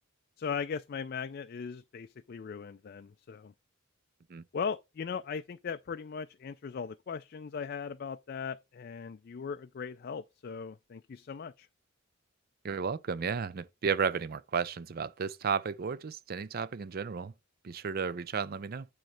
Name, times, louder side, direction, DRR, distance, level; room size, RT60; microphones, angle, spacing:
voice 1, 0.4-3.5 4.5-11.7, left 6 dB, 50° left, 0.4 m, -38 dB
voice 2, 12.6-17.3 17.6-18.9, right 6 dB, 45° right, 0.4 m, -33 dB
8.9 x 3.2 x 6.2 m
head